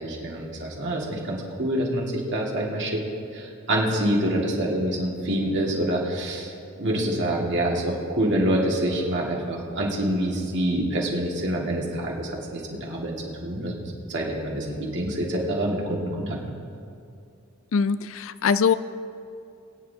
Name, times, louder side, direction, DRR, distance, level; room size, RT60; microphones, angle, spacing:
voice 1, 0.0-3.0 3.3-13.1 13.4-13.8 14.1-16.4, right 1 dB, 55° right, -2 dB, 2.0 m, -26 dB
voice 2, 17.7-18.7, left 6 dB, 65° left, 13 dB, 0.4 m, -22 dB
21.5 x 9.6 x 2.8 m, 2.5 s
head